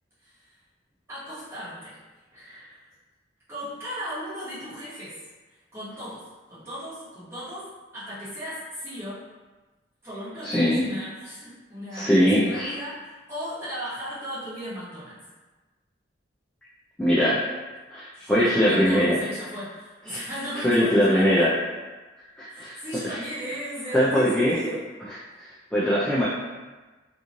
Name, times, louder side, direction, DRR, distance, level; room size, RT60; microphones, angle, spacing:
voice 1, 0.2-0.5 1.1-2.0 2.3-2.8 3.5-5.2 5.7-9.2 10.0-15.2 18.1-21.5 22.5-24.8, equal, 15° right, -12 dB, 1.1 m, -36 dB
voice 2, 10.4-10.8 11.9-12.7 17.0-17.4 17.9-19.2 20.1-20.2 20.6-21.5 22.4-22.8 23.0-23.2 23.9-24.5 25.4-26.3, equal, 5° left, -9 dB, 0.3 m, -21 dB
2.9 x 2.5 x 2.5 m, 1.2 s
head